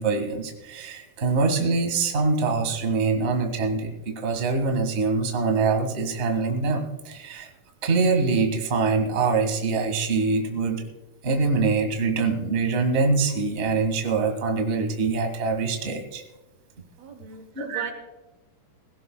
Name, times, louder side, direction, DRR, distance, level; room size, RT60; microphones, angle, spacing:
voice 1, 0.0-7.5 7.8-10.8 11.2-16.2 17.5-17.9, right 4 dB, 30° right, 4 dB, 1.5 m, -24 dB
voice 2, 17.0-17.9, right 6 dB, 65° right, 6 dB, 2.0 m, -39 dB
20.5 x 16.5 x 2.3 m, 1.1 s
omnidirectional pair, 3.6 m